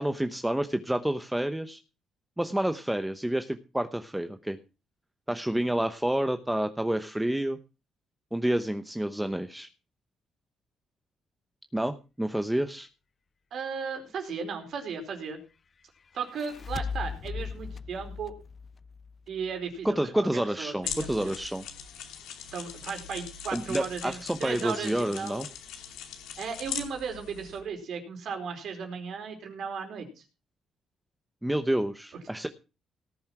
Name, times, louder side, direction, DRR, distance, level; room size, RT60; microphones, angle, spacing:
voice 1, 0.0-1.8 2.4-4.6 5.3-7.6 8.3-9.7 11.7-12.9 19.8-21.6 23.5-25.5 31.4-32.5, right 1 dB, 5° right, 9 dB, 0.9 m, -29 dB
voice 2, 13.5-15.4 16.1-18.3 19.3-21.3 22.5-25.4 26.4-30.2, right 6 dB, 65° right, 4 dB, 4.5 m, -36 dB
sound 1, 16.1-19.5, left 5 dB, 40° left, 0.6 m, -38 dB
sound 2, 20.8-27.6, left 8 dB, 90° left, 2.6 m, -40 dB
18.0 x 7.2 x 5.9 m, 0.33 s
cardioid pair, 90°, 0 cm